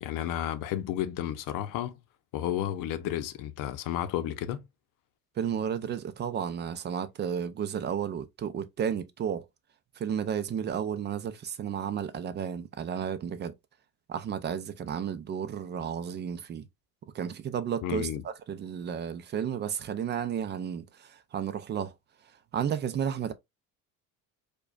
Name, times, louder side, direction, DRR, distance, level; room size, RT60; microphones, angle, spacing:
voice 1, 0.0-2.0 2.3-4.6 17.8-18.2, left 11 dB, 65° left, 0.6 m, -32 dB
voice 2, 5.4-9.5 10.0-13.5 14.1-16.7 17.1-21.9 22.5-23.3, right 8 dB, 30° right, 0.4 m, -32 dB
4.8 x 2.3 x 2.4 m
cardioid pair, 155°, 35 cm